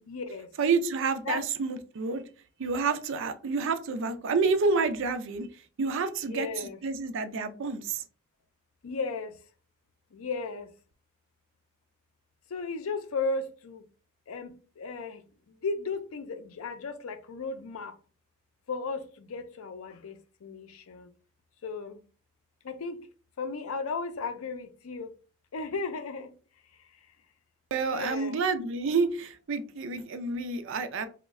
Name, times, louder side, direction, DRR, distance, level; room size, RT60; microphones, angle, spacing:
voice 1, 0.1-0.5 1.2-1.5 6.2-6.8 8.8-9.3 10.1-10.7 12.5-13.8 14.3-15.2 15.6-17.9 18.7-21.1 21.6-22.0 22.6-23.0 23.4-25.1 25.5-26.3 27.8-28.4, left 4 dB, 75° left, 0.5 m, -35 dB
voice 2, 0.6-2.2 2.6-5.5 5.8-8.0 27.7-31.1, right 4 dB, 60° right, 0.4 m, -29 dB
3.0 x 2.1 x 3.5 m
head